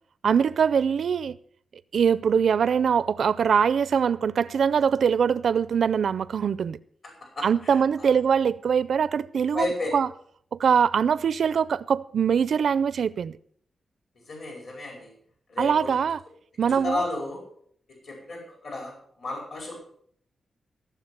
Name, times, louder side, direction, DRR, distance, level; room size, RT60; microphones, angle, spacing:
voice 1, 0.2-1.4 1.9-6.8 7.4-10.1 10.5-13.4 15.6-16.2 16.6-17.1, right 7 dB, 70° right, 0.4 m, -23 dB
voice 2, 7.2-8.1 9.5-9.9 14.3-15.1 15.5-16.0 16.7-17.4 18.0-19.7, left 2 dB, 65° left, 5.0 m, -33 dB
15.5 x 7.1 x 6.7 m
wide cardioid pair, 135°, 0 cm